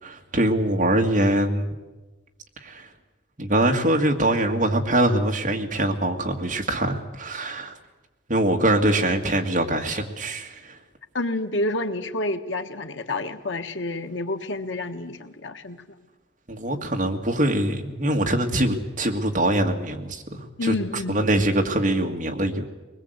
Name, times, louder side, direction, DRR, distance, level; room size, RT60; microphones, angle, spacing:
voice 1, 0.0-1.7 2.6-2.9 3.4-7.8 8.3-10.8 16.5-22.6, right 1 dB, 45° right, 2 dB, 2.2 m, -23 dB
voice 2, 11.1-15.8 20.6-21.2, left 2 dB, 90° left, 7 dB, 1.5 m, -29 dB
22.0 x 20.5 x 8.2 m, 1.1 s
head